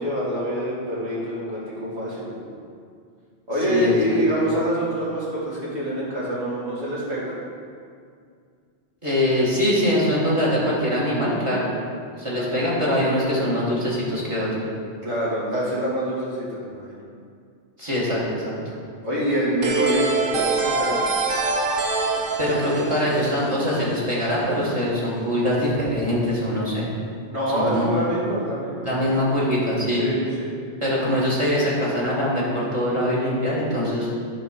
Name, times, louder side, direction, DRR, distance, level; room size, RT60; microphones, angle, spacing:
voice 1, 0.0-2.5 3.5-7.3 12.3-12.6 15.0-17.0 19.0-21.0 27.3-28.9 29.9-30.6, right 1 dB, 70° right, -9 dB, 2.9 m, -26 dB
voice 2, 3.7-4.4 9.0-11.7 12.2-14.7 17.8-18.6 22.4-26.9 27.5-27.9 28.8-30.1 30.8-34.1, equal, 25° right, -7 dB, 2.1 m, -23 dB
sound 1, 19.6-24.3, right 3 dB, 55° right, 1.0 m, -25 dB
9.0 x 4.2 x 6.5 m, 2.2 s
omnidirectional pair, 1.2 m